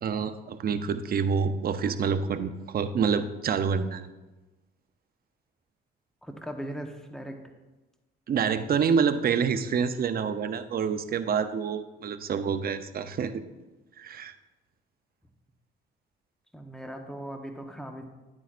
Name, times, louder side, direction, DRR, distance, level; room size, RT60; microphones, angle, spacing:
voice 1, 0.0-4.1 8.3-13.3 14.0-14.3, right 6 dB, 50° right, 9 dB, 0.6 m, -27 dB
voice 2, 6.2-7.4 16.5-18.0, right 1 dB, 5° left, 4 dB, 1.0 m, -39 dB
10.5 x 8.6 x 2.5 m, 1.1 s
cardioid pair, 90°, 20 cm